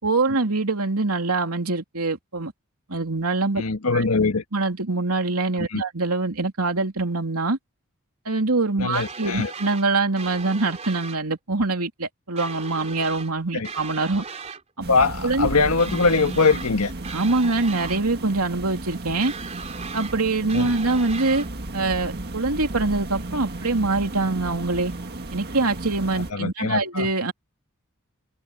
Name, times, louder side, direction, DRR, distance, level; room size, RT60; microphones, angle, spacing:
voice 1, 0.0-2.5 2.9-3.6 3.9-4.0 4.5-7.6 8.2-14.2 14.8-14.9 15.2-15.5 17.1-19.3 19.9-21.4 21.7-24.9 25.3-27.3, right 3 dB, 85° right, 3.0 m, -24 dB
voice 2, 3.6-4.4 5.7-5.8 8.8-9.5 13.5-13.7 14.9-16.9 20.5-20.7 26.1-27.1, left 4 dB, 85° left, 1.6 m, -22 dB
sound 1, 8.9-9.9 10.2-11.2 12.4-13.3 13.6-14.6 15.8-16.7 17.0-18.0 19.2-20.1 20.5-21.5, right 5 dB, 30° right, 3.3 m, -37 dB
sound 2, 14.8-26.3, right 2 dB, 45° right, 1.7 m, -34 dB
head